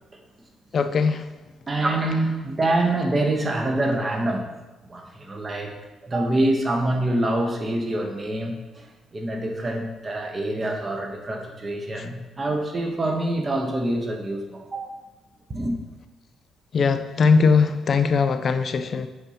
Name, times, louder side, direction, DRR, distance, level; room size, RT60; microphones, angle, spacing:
voice 1, 0.7-1.2 16.7-19.1, left 5 dB, 50° left, 9 dB, 0.4 m, -20 dB
voice 2, 1.7-4.5 4.8-5.7 6.0-15.0 15.5-15.8, right 1 dB, 30° right, 2 dB, 1.1 m, -25 dB
7.8 x 2.8 x 5.7 m, 1.1 s
cardioid pair, 90°, 0 cm